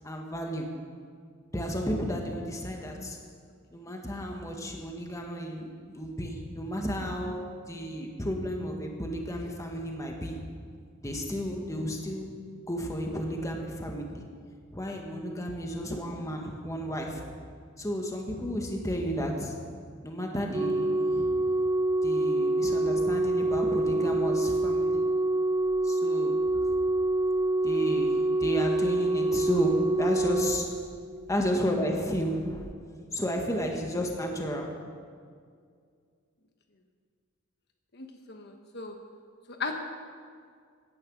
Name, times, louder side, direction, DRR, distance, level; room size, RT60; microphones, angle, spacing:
voice 1, 0.0-0.8 1.5-3.2 3.7-10.4 11.0-12.3 12.7-14.2 14.7-17.2 17.8-19.6 20.0-21.3 22.0-25.0 25.8-26.4 27.6-30.8 31.3-32.7 33.1-34.7, equal, 15° left, 2 dB, 1.7 m, -32 dB
Organ, 20.5-31.4 32.5-32.7, right 2 dB, 15° right, 0.3 m, -26 dB
voice 2, 37.9-39.0 39.5-39.7, left 4 dB, 55° left, 4 dB, 1.2 m, -37 dB
16.5 x 11.0 x 6.4 m, 2.1 s
head